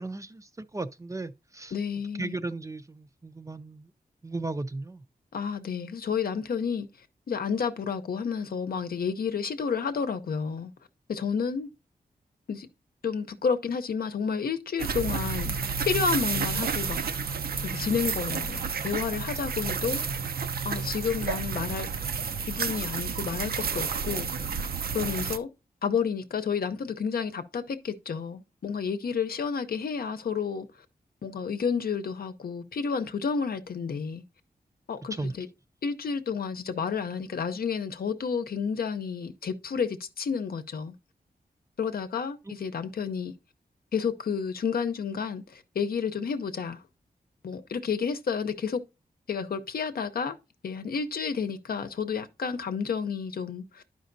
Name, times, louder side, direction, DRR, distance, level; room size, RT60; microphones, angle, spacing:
voice 1, 0.0-1.7 2.2-3.9 4.2-5.0 35.1-35.3 42.5-42.6, right 2 dB, 20° right, 0.4 m, -36 dB
voice 2, 1.7-2.4 5.3-6.9 7.3-10.7 11.1-11.7 12.5-12.7 13.0-15.5 15.9-17.0 17.6-20.0 20.6-21.9 22.5-24.3 24.9-25.5 25.8-30.7 31.2-34.2 34.9-35.5 35.8-40.9 41.8-43.3 43.9-46.8 47.4-48.8 49.3-50.4 50.6-53.8, left 6 dB, 75° left, 0.7 m, -30 dB
sound 1, 14.8-25.4, right 5 dB, 75° right, 0.6 m, -31 dB
11.5 x 5.0 x 2.6 m
wide cardioid pair, 115°, 16 cm